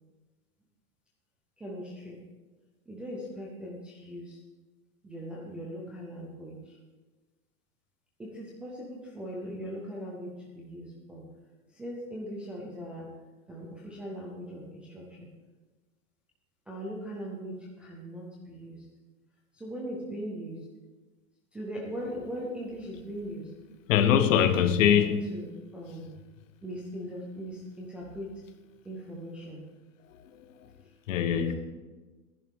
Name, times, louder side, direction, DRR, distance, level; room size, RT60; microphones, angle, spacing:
voice 1, 1.6-2.2 2.9-4.4 5.0-6.8 8.2-11.2 11.7-13.1 13.5-15.3 16.7-18.9 19.5-20.6 21.5-23.5 24.0-24.3 24.9-26.1 26.6-28.3 28.8-29.6 31.4-31.5, equal, 5° right, 0.4 m, -39 dB
voice 2, 23.9-25.3 30.3-30.7 31.1-31.5, left 9 dB, 65° left, 1.2 m, -23 dB
15.0 x 10.5 x 3.6 m
supercardioid pair, 160°, 42 cm